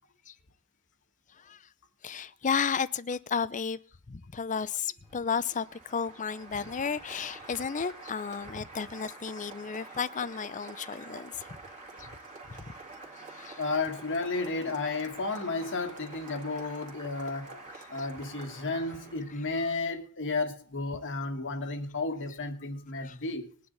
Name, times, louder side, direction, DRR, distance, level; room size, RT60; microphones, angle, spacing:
voice 1, 2.0-3.8 4.1-11.3 12.0-12.1 13.3-13.6 18.0-18.1 23.0-23.1, left 6 dB, 35° left, 0.6 m, -33 dB
Applause, 5.0-19.5, right 3 dB, 35° right, 2.2 m, -47 dB
voice 2, 13.6-23.5, left 3 dB, 60° left, 1.7 m, -33 dB
20.5 x 9.6 x 4.0 m
head